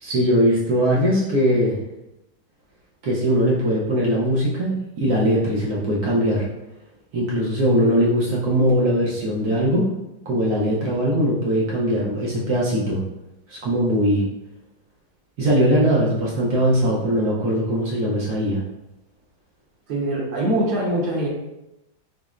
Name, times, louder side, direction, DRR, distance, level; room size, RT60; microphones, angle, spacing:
voice 1, 0.0-1.8 3.0-6.5 7.1-9.8 10.3-13.0 13.5-14.2 15.4-18.6, equal, 65° right, -5 dB, 1.0 m, -20 dB
voice 2, 19.9-21.3, right 1 dB, 85° right, -3 dB, 1.8 m, -23 dB
5.9 x 2.1 x 2.4 m, 0.92 s
omnidirectional pair, 2.1 m